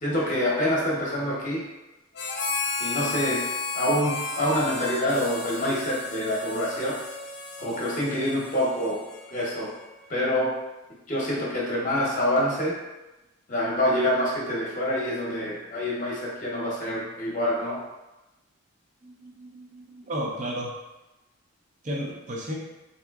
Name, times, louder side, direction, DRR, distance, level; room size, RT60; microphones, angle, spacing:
voice 1, 0.0-1.6 2.8-3.4 3.7-6.9 7.6-9.0 9.3-9.7 10.1-10.5 11.1-12.7 13.5-17.8, left 1 dB, 40° left, -5 dB, 0.8 m, -26 dB
Harmonica, 2.1-9.9, left 3 dB, 55° left, 0.4 m, -33 dB
voice 2, 19.0-20.7 21.8-22.6, equal, 35° right, -1 dB, 0.5 m, -33 dB
3.6 x 2.7 x 2.3 m, 1.0 s
head